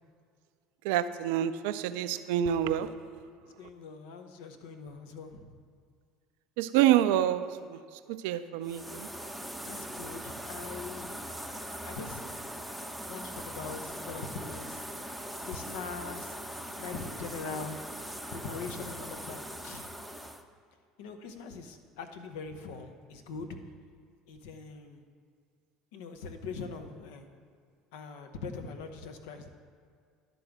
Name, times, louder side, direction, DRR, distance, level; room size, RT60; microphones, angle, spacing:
voice 1, 0.8-2.9 6.6-7.4 7.7-7.8 8.2-9.1, right 11 dB, 70° right, 12 dB, 0.3 m, -27 dB
voice 2, 3.4-5.5 9.6-11.1 11.8-12.4 13.1-14.8 15.4-16.4 16.8-17.8 18.3-19.9 21.0-23.6 24.3-25.0 25.9-27.3 27.9-29.5, left 4 dB, 70° left, 7 dB, 0.7 m, -42 dB
sound 1, 8.6-20.4, equal, ahead, 0.6 m, -41 dB
11.0 x 3.9 x 5.9 m, 2.1 s
hypercardioid pair, 70°, 0 cm